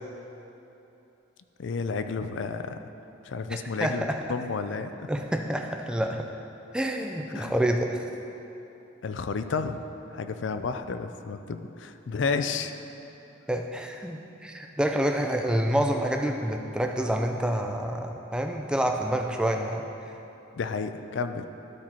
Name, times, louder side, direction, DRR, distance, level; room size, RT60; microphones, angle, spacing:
voice 1, 1.6-2.8 3.2-5.1 7.3-7.5 9.0-9.8 10.1-12.7 20.5-21.5, left 4 dB, 65° left, 9 dB, 0.4 m, -31 dB
voice 2, 3.8-4.2 5.1-6.3 6.7-8.1 13.5-19.9, right 1 dB, 5° right, 3 dB, 0.4 m, -27 dB
13.0 x 4.5 x 4.3 m, 3.0 s
head